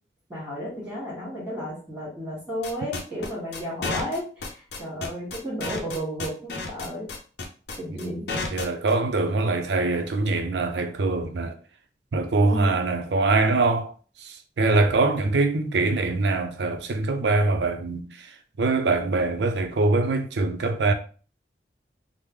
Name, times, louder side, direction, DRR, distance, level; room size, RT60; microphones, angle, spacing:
voice 1, 0.3-4.3 4.8-7.1 7.8-8.5 12.4-12.7, equal, 5° right, 1.6 m, -33 dB
sound 1, 2.6-8.9, left 3 dB, 75° left, 0.6 m, -31 dB
voice 2, 7.9-8.2 8.5-11.6 12.1-13.9 14.2-20.9, right 3 dB, 85° right, 0.5 m, -23 dB
3.5 x 2.0 x 3.1 m
head